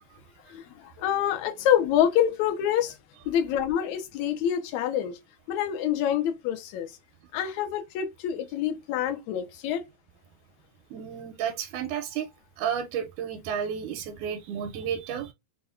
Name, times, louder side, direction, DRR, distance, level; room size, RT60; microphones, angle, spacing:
voice 1, 0.5-2.9 3.3-5.1 5.5-6.9 7.3-9.8, left 10 dB, 75° left, 1.9 m, -26 dB
voice 2, 10.9-12.3 12.6-15.3, right 8 dB, 85° right, 1.9 m, -32 dB
5.5 x 2.2 x 2.3 m
omnidirectional pair, 3.5 m